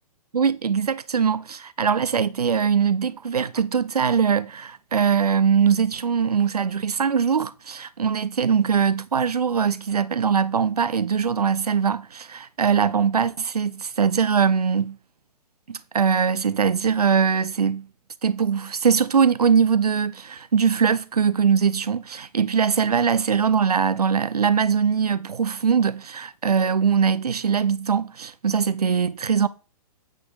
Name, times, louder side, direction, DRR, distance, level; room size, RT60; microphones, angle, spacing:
voice 1, 0.3-15.0 15.7-17.8 18.2-29.5, right 6 dB, 75° right, 0.6 m, -21 dB
8.2 x 6.1 x 3.4 m
figure-of-eight pair, 120°, 20 cm